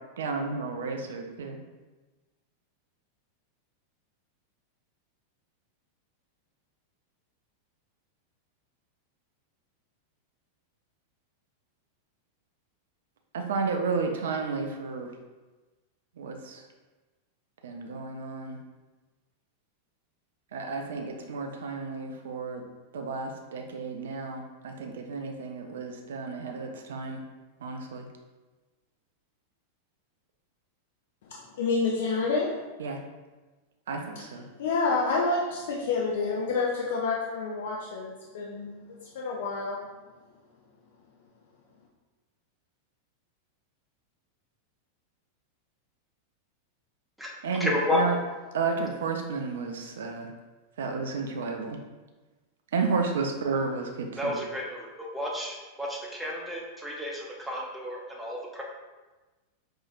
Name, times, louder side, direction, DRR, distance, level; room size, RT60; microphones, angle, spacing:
voice 1, 0.2-1.6 13.3-15.1 16.2-16.7 17.6-18.6 20.5-22.6 22.9-27.2 27.6-28.1 32.8-33.0 33.9-34.4 47.4-48.2 48.5-50.3 50.8-51.8 52.7-54.4, right 4 dB, 60° right, 3 dB, 0.5 m, -32 dB
voice 2, 31.2-32.5 34.6-39.8, left 4 dB, 55° left, -3 dB, 0.5 m, -28 dB
voice 3, 47.6-48.0 54.2-58.6, left 1 dB, 5° right, -3 dB, 0.8 m, -32 dB
5.5 x 2.7 x 2.5 m, 1.2 s
figure-of-eight pair, 90°, 0 cm